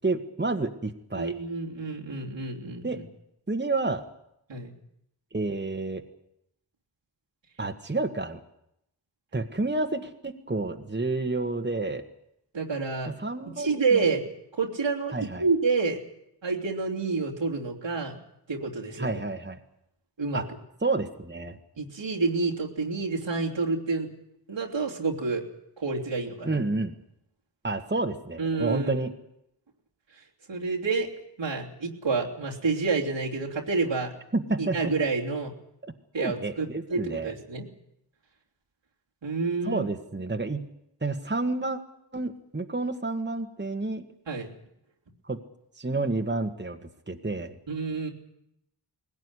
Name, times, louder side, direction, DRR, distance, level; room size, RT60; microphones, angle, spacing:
voice 1, 0.0-1.3 2.8-3.0 3.5-4.0 5.3-6.0 7.6-8.4 9.3-12.0 13.1-14.0 15.1-15.4 19.0-19.6 20.3-20.5 20.8-21.6 26.4-26.9 27.6-29.1 34.3-34.9 36.2-37.3 39.6-40.7 41.0-41.8 42.1-44.0 45.3-45.4 45.8-47.6, right 3 dB, 25° right, 5 dB, 1.8 m, -30 dB
voice 2, 1.1-3.0 4.5-4.7 12.5-13.1 13.5-14.3 14.6-16.0 16.4-18.2 18.5-19.2 20.2-20.4 21.8-24.1 24.5-25.4 25.8-26.6 28.4-29.1 30.5-31.1 31.4-34.1 34.6-35.5 36.1-37.6 39.2-39.8 44.3-44.5 47.7-48.1, right 4 dB, 85° right, -2 dB, 3.3 m, -28 dB
20.0 x 17.5 x 9.9 m, 0.79 s
cardioid pair, 45°, 44 cm